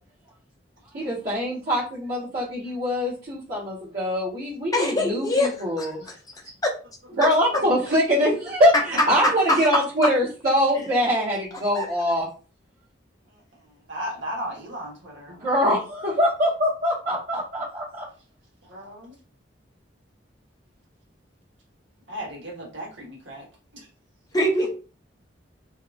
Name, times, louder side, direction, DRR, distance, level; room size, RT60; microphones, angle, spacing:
voice 1, 0.9-6.1 7.2-12.3 15.4-18.1, equal, 50° right, -10 dB, 1.0 m, -23 dB
voice 2, 4.7-5.5 5.8-5.9 6.6-6.7 9.2-9.6 11.7-11.9 24.3-24.7, left 1 dB, 20° left, 1 dB, 0.5 m, -22 dB
voice 3, 7.5-7.9 13.3-13.4 13.9-14.9 18.7-19.1 22.1-23.5 23.7-23.9, equal, 75° right, -3 dB, 1.1 m, -35 dB
2.7 x 2.3 x 2.4 m, 0.37 s
head